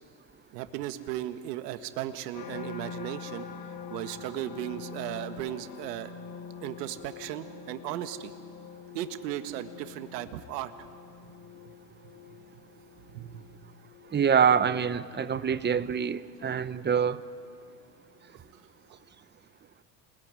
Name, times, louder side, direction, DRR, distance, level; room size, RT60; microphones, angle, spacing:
voice 1, 0.5-3.5 3.9-6.1 6.6-8.3 8.9-10.7 11.7-11.8 13.1-13.4 15.3-15.6, right 13 dB, 80° right, 9 dB, 1.7 m, -36 dB
sound 1, 2.3-17.5 18.0-18.5, left 6 dB, 55° left, 6.1 m, -46 dB
voice 2, 14.1-17.2, right 7 dB, 20° right, 14 dB, 1.0 m, -25 dB
29.0 x 21.0 x 9.7 m, 2.2 s
supercardioid pair, 95°, 47 cm